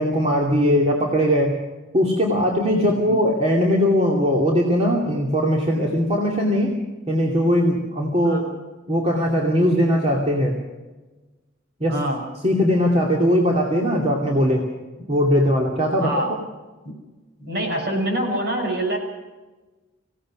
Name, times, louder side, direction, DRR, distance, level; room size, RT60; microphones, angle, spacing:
voice 1, 0.0-1.6 1.9-6.8 7.1-8.4 8.9-10.6 11.8-12.0 12.4-14.6 15.1-16.3, equal, 35° right, -1 dB, 2.6 m, -20 dB
voice 2, 17.4-19.0, right 1 dB, 55° right, 2 dB, 6.4 m, -25 dB
25.5 x 17.0 x 6.4 m, 1.2 s
head